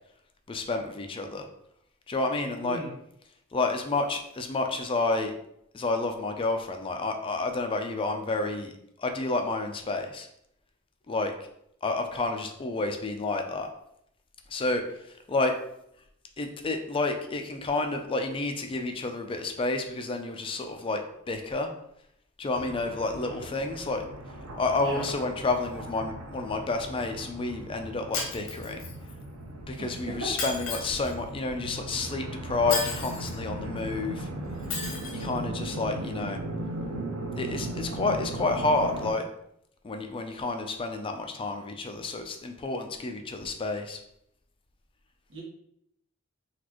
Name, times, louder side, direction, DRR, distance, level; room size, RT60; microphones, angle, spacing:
voice 1, 0.5-1.5 2.1-2.8 3.5-5.3 5.7-8.7 9.0-10.3 11.1-11.3 11.8-13.7 14.5-15.5 16.4-21.7 22.4-24.0 24.6-28.8 29.6-34.3 35.1-36.4 37.4-39.2 39.8-44.0, left 3 dB, 25° left, 5 dB, 0.4 m, -30 dB
voice 2, 2.6-2.9 24.8-25.0 29.8-30.4 45.3-45.4, right 2 dB, 60° right, -2 dB, 1.1 m, -37 dB
sound 1, 22.5-39.1, right 1 dB, 80° right, 0.6 m, -38 dB
Shatter, 28.1-29.1 30.4-31.1 32.7-33.3 34.7-35.3, left 4 dB, 75° left, 1.0 m, -33 dB
4.1 x 2.5 x 2.9 m, 0.74 s
head